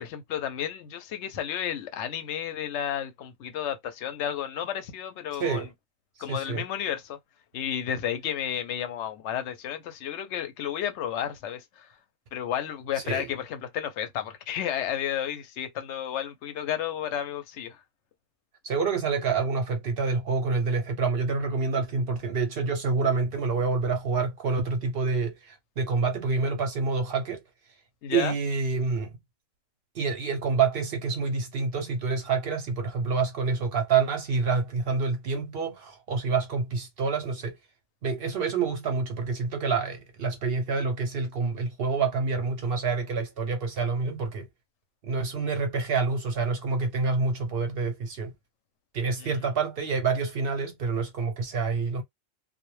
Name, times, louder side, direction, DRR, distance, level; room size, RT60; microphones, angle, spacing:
voice 1, 0.0-5.7 6.2-7.2 7.5-11.9 12.3-17.8 28.0-28.3 49.2-49.3, left 9 dB, 70° left, 0.8 m, -32 dB
voice 2, 6.3-6.6 13.0-13.3 18.6-27.4 28.1-29.1 29.9-37.6 38.0-44.5 45.0-48.3 48.9-52.0, right 4 dB, 60° right, 0.7 m, -27 dB
2.1 x 2.1 x 3.0 m
omnidirectional pair, 1.3 m